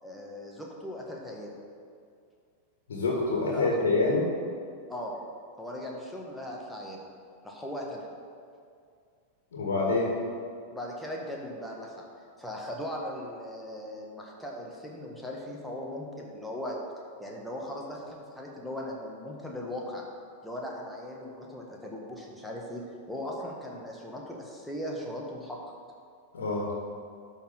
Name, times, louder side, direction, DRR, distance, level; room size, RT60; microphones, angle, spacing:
voice 1, 0.0-1.6 3.5-3.7 4.9-5.1 5.6-7.0 7.4-8.0 10.7-12.1 12.4-16.8 17.2-20.0 20.4-25.6, left 1 dB, 5° left, -2 dB, 1.7 m, -38 dB
voice 2, 2.9-4.3 9.5-10.2 26.3-26.7, left 3 dB, 65° left, -3 dB, 1.9 m, -26 dB
12.0 x 4.5 x 5.9 m, 2.3 s
figure-of-eight pair, 90°, 0 cm